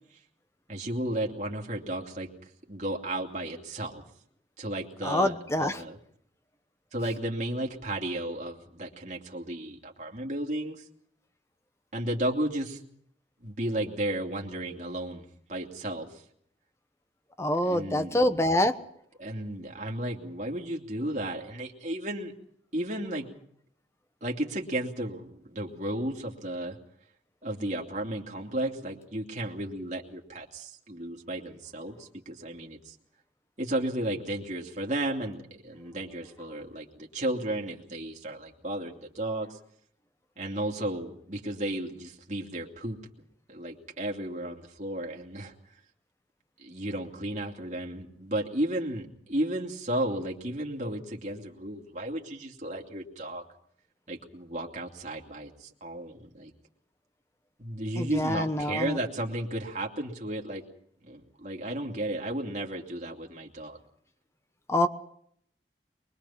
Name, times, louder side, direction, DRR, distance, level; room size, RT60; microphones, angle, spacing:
voice 1, 0.7-2.3 2.7-4.0 4.6-6.0 6.9-10.8 11.9-12.8 13.4-15.2 15.5-16.2 17.6-18.4 19.2-22.3 22.7-23.3 24.2-26.8 27.4-32.9 33.6-39.6 40.4-43.0 43.5-45.5 46.6-53.4 54.1-56.5 57.6-60.6 61.0-63.8, right 1 dB, 40° right, 0 dB, 2.8 m, -33 dB
voice 2, 5.0-5.8 17.4-18.7 58.0-59.0 64.7-64.9, left 1 dB, 15° left, 9 dB, 1.1 m, -25 dB
23.5 x 22.0 x 5.9 m, 0.68 s
head